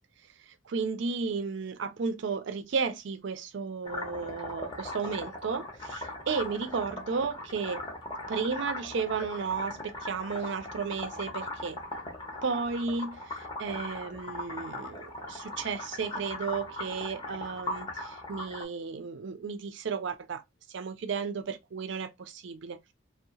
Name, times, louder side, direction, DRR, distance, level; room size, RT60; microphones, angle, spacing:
voice 1, 0.5-7.8 8.3-11.8 12.4-20.4 20.7-22.8, right 5 dB, 60° right, 0.4 m, -33 dB
sound 1, 3.8-18.6, left 2 dB, 20° left, 0.7 m, -39 dB
2.7 x 2.0 x 2.8 m
head